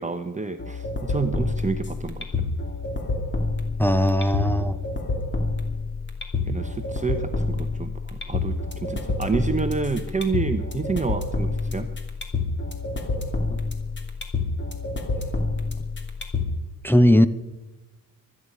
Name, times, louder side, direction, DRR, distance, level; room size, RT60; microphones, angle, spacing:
voice 1, 0.0-2.5 6.5-11.9, right 4 dB, 20° right, 7 dB, 0.9 m, -29 dB
sound 1, 0.6-16.6, left 3 dB, 30° left, 2.6 m, -28 dB
voice 2, 3.8-4.8 13.5-13.6 16.8-17.3, equal, 5° left, 8 dB, 0.7 m, -18 dB
24.5 x 9.9 x 5.5 m, 1.1 s
wide cardioid pair, 120°, 34 cm